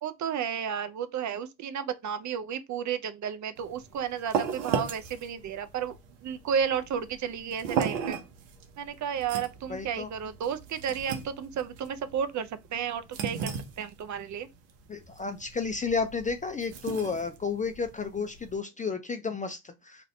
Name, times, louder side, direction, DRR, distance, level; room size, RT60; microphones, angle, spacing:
voice 1, 0.0-6.0 6.2-8.2 8.8-14.5, right 8 dB, 40° right, 0.5 m, -32 dB
sound 1, 3.6-18.6, right 7 dB, 85° right, 0.8 m, -36 dB
voice 2, 9.7-10.1 14.9-20.0, left 5 dB, 20° left, 0.4 m, -32 dB
2.6 x 2.5 x 3.1 m
hypercardioid pair, 65°, 44 cm